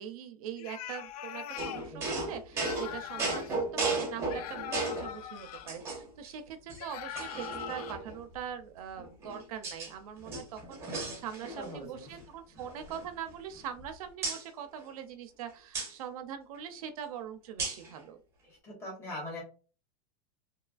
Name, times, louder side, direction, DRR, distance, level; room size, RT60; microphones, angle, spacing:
voice 1, 0.0-18.2, right 9 dB, 65° right, 7 dB, 0.4 m, -42 dB
sound 1, 0.6-1.9 2.5-3.6 4.3-5.7 6.8-7.9, left 10 dB, 75° left, 0.4 m, -41 dB
sound 2, 1.6-5.1 5.7-6.3 6.7-6.8 7.2-8.2 9.0-9.9 10.2-11.8 12.0-12.2 12.6-13.8 14.2-14.4 15.7-15.9 17.6-17.9, right 3 dB, 15° right, 0.6 m, -35 dB
voice 2, 11.6-12.1 18.4-19.4, left 1 dB, 15° left, -4 dB, 1.0 m, -42 dB
2.6 x 2.3 x 2.4 m, 0.36 s
supercardioid pair, 175°, 20 cm